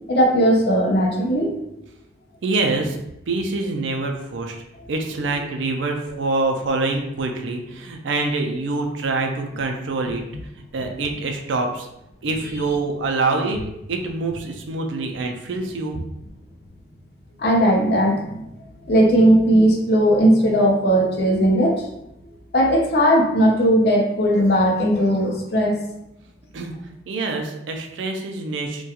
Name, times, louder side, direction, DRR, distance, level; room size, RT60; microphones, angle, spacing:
voice 1, 0.1-1.5 10.3-10.4 10.8-10.9 17.4-18.5 18.9-21.8 22.5-25.8, equal, 55° left, 0 dB, 0.5 m, -17 dB
voice 2, 2.4-3.0 3.3-4.6 4.9-10.2 10.7-11.9 12.2-13.6 13.9-16.0 26.5-26.7 27.1-28.8, right 3 dB, 85° right, 3 dB, 0.4 m, -25 dB
2.3 x 2.2 x 2.7 m, 0.84 s
head